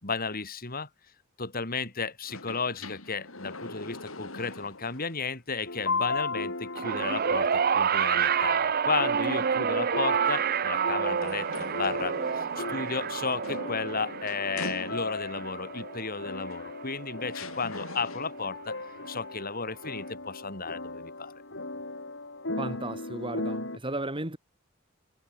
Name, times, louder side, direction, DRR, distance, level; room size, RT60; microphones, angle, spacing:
voice 1, 0.0-0.9 1.4-18.8 19.1-21.3, left 4 dB, 45° left, 4.1 m, -33 dB
sound 1, 2.2-5.2 5.6-5.7 11.1-15.4 16.5-16.6 17.3-18.5, left 3 dB, 85° left, 7.5 m, -43 dB
sound 2, 5.7-23.8, left 3 dB, 65° left, 5.1 m, -37 dB
sound 3, 6.8-17.2 18.2-18.3, right 7 dB, 45° right, 0.6 m, -29 dB
voice 2, 22.6-24.4, right 2 dB, 25° right, 3.3 m, -34 dB
head